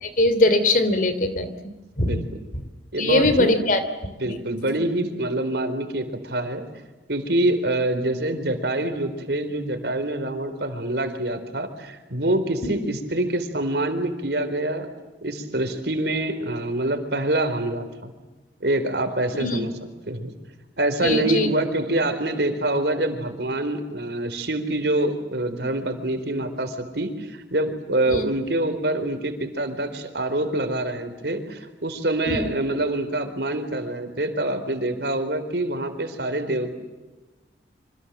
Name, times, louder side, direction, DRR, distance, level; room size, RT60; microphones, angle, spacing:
voice 1, 0.0-1.5 2.0-2.2 3.0-4.4 12.6-12.8 19.4-19.7 21.0-21.5 28.1-28.2 32.3-32.5, left 2 dB, 50° left, 11 dB, 2.9 m, -21 dB
voice 2, 2.0-2.4 2.9-3.5 4.2-6.7 7.1-14.9 15.2-18.1 18.6-19.7 20.0-20.3 20.8-36.7, right 1 dB, 70° right, 8 dB, 4.1 m, -25 dB
27.5 x 26.5 x 7.5 m, 1.2 s
head